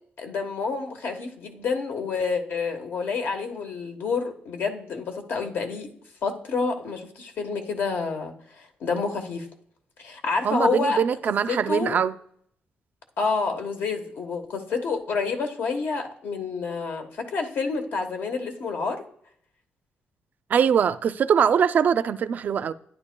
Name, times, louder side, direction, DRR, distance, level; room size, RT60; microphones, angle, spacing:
voice 1, 0.2-5.9 6.2-9.5 10.0-11.0 11.5-12.0 13.2-19.0, left 4 dB, 70° left, 1.1 m, -28 dB
voice 2, 10.4-12.1 20.5-22.7, right 7 dB, 50° right, 0.4 m, -22 dB
12.0 x 10.5 x 2.2 m
cardioid pair, 130°, 4 cm